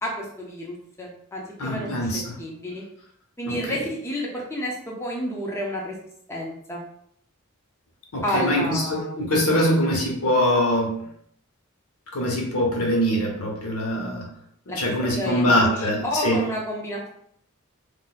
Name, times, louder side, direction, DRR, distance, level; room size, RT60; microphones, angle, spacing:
voice 1, 0.0-2.1 2.4-2.8 3.4-6.0 6.3-6.8 8.2-9.1 14.7-17.1, equal, 10° left, -2 dB, 0.5 m, -30 dB
voice 2, 1.6-2.4 3.5-3.8 8.1-10.9 12.1-14.3 14.7-16.4, equal, 75° left, -1 dB, 1.0 m, -23 dB
4.0 x 2.5 x 2.4 m, 0.68 s
head